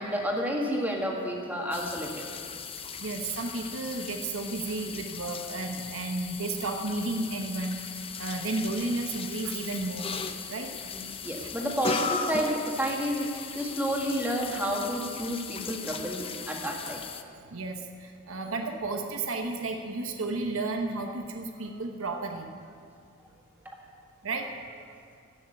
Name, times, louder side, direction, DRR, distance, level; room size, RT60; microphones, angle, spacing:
voice 1, 0.0-2.3 10.9-17.0, equal, 10° right, -1 dB, 1.8 m, -30 dB
sound 1, 1.7-17.2, left 5 dB, 25° left, 0.6 m, -38 dB
voice 2, 3.0-10.1 10.5-10.7 11.4-11.5 17.4-22.5 24.2-25.0, right 2 dB, 65° right, 3 dB, 1.0 m, -33 dB
14.5 x 6.5 x 9.8 m, 2.2 s
head